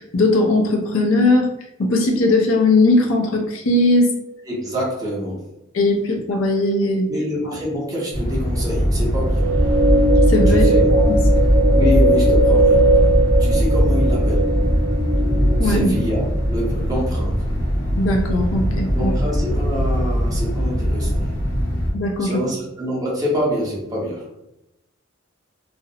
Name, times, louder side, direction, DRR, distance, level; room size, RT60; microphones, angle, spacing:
voice 1, 0.0-1.5 1.8-4.1 5.7-7.1 10.3-11.2 15.6-15.9 18.0-19.1 21.9-22.5, left 2 dB, 90° left, 3 dB, 0.5 m, -19 dB
voice 2, 4.5-5.5 7.1-9.6 10.5-10.9 11.7-12.8 13.4-14.5 15.6-17.5 18.9-21.2 22.2-24.3, equal, 20° right, -4 dB, 0.8 m, -26 dB
sound 1, 8.1-21.9, equal, 50° left, 0.7 m, -19 dB
sound 2, 9.3-16.6, right 2 dB, 75° right, 0.4 m, -19 dB
2.5 x 2.0 x 2.7 m, 0.86 s
head